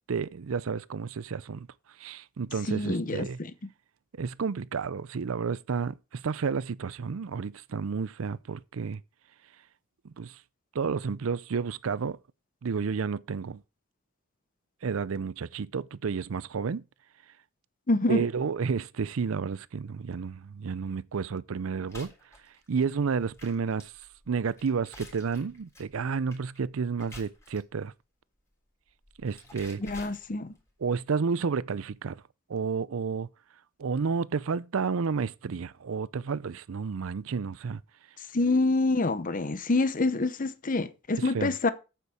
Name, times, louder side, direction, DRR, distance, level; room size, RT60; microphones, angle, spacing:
voice 1, 0.1-1.7 2.0-3.4 4.2-9.0 10.0-10.4 10.7-12.2 12.6-13.6 14.8-16.8 18.1-22.1 22.7-23.9 24.3-27.9 29.2-29.8 30.8-32.2 32.5-33.3 33.8-37.8 41.2-41.5, right 5 dB, 70° right, 0.5 m, -31 dB
voice 2, 2.7-3.5 17.9-18.2 29.8-30.5 38.3-41.7, left 2 dB, 40° left, 0.8 m, -26 dB
sound 1, 21.9-27.8 28.9-30.7, left 1 dB, 15° left, 3.5 m, -50 dB
8.4 x 8.2 x 4.8 m
head